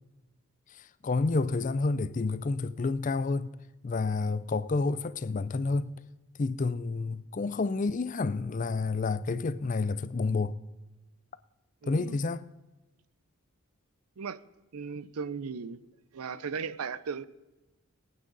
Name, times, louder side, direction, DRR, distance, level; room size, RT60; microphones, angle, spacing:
voice 1, 0.7-3.6 3.8-6.0 6.4-10.6 11.9-12.5, left 3 dB, 35° left, 0.4 m, -29 dB
voice 2, 11.8-12.2 14.2-14.4 14.7-15.8 16.1-17.2, right 5 dB, 85° right, 0.5 m, -36 dB
22.0 x 8.9 x 3.9 m
head